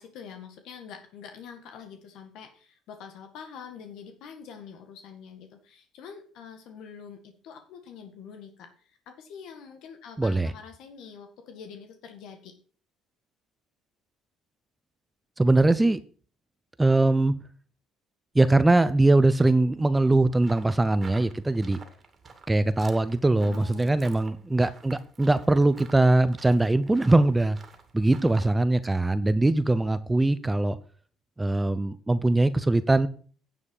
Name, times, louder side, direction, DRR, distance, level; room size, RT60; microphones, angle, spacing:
voice 1, 0.0-12.5 23.4-24.2, left 7 dB, 70° left, 5 dB, 1.8 m, -45 dB
voice 2, 10.2-10.5 15.4-16.0 16.8-17.3 18.3-21.8 22.5-27.6 27.9-30.8 31.4-33.1, right 2 dB, 10° right, 14 dB, 0.6 m, -21 dB
sound 1, 20.4-28.6, right 4 dB, 30° right, 2.3 m, -50 dB
9.8 x 7.3 x 5.5 m, 0.42 s
supercardioid pair, 95°, 0 cm